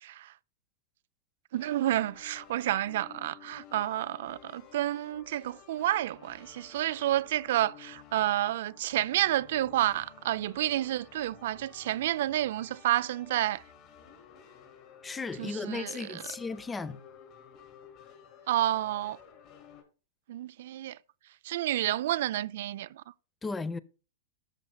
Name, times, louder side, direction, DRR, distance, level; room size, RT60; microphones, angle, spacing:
voice 1, 0.0-0.3 1.5-13.6 15.4-16.2 18.5-19.2 20.3-21.0 21.4-23.0, right 13 dB, 65° right, 0.3 m, -30 dB
sound 1, 1.6-19.8, left 8 dB, 40° left, 3.1 m, -53 dB
voice 2, 15.0-17.0 23.4-23.8, left 4 dB, 10° left, 0.6 m, -35 dB
13.0 x 6.8 x 2.2 m
hypercardioid pair, 135°, 0 cm